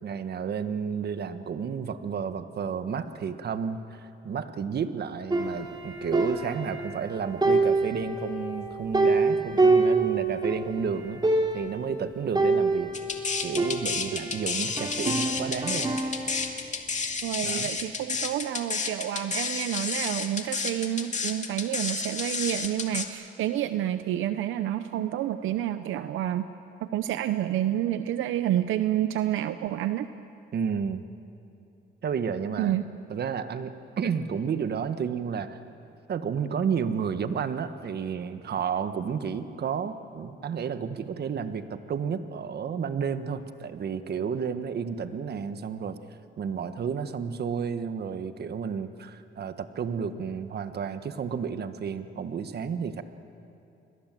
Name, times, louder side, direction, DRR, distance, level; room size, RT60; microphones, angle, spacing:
voice 1, 0.0-11.2 11.5-12.9 13.4-16.0 17.4-17.7 30.5-31.0 32.0-32.7 33.1-35.6 36.1-46.0 46.4-53.0, right 6 dB, 55° right, 10 dB, 1.5 m, -31 dB
sound 1, 5.3-7.1 7.4-10.7 11.0-11.1 11.2-11.8 12.3-14.3 14.8-16.4, right 3 dB, 20° right, 3.4 m, -26 dB
sound 2, 12.9-23.1, left 5 dB, 35° left, 2.3 m, -30 dB
voice 2, 17.2-26.5 26.8-30.1 32.6-32.8, right 12 dB, 85° right, 11 dB, 0.8 m, -29 dB
29.5 x 21.5 x 7.7 m, 2.7 s
cardioid pair, 90°, 20 cm